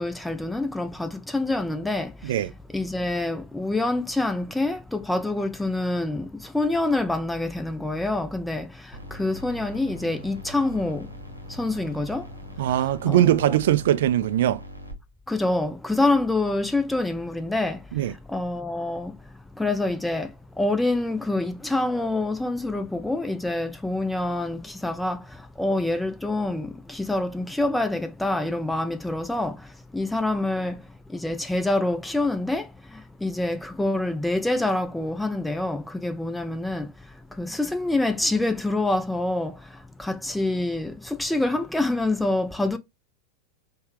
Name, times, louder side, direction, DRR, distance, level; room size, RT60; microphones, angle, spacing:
voice 1, 0.0-2.5 2.7-11.1 11.5-12.3 12.6-13.6 15.3-19.2 19.5-42.8, left 2 dB, 5° left, 0.5 m, -27 dB
sound 1, 8.9-14.9, equal, 90° right, 1.0 m, -42 dB
voice 2, 12.6-14.6 17.9-18.1, right 12 dB, 55° right, 0.4 m, -21 dB
5.4 x 2.3 x 3.2 m
figure-of-eight pair, 90°, 0 cm